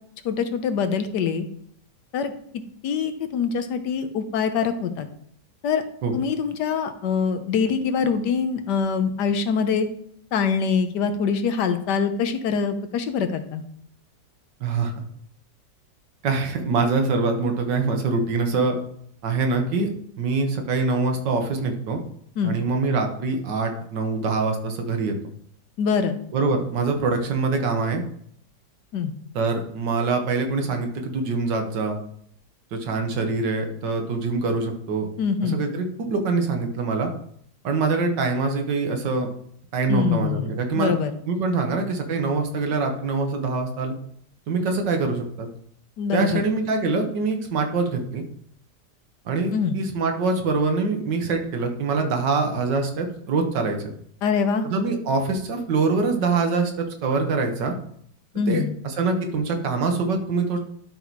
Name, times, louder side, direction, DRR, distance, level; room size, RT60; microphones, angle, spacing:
voice 1, 0.2-1.5 2.1-2.3 2.8-5.1 5.6-5.8 6.1-9.9 10.3-13.6 22.4-22.5 25.8-26.2 28.9-29.1 35.2-35.6 39.9-41.1 46.0-46.4 49.5-49.8 54.2-54.7 58.3-58.7, left 6 dB, 75° left, 9 dB, 1.4 m, -24 dB
voice 2, 14.6-15.0 16.2-18.8 19.2-19.9 20.2-22.0 22.4-25.1 26.3-28.0 29.4-32.0 32.7-35.1 35.4-37.1 37.6-39.3 39.7-40.9 41.3-43.9 44.5-45.5 46.1-48.2 49.3-53.8 54.6-57.8 58.5-60.6, right 4 dB, 90° right, 4 dB, 1.9 m, -24 dB
11.5 x 4.1 x 4.6 m, 0.65 s
omnidirectional pair, 1.9 m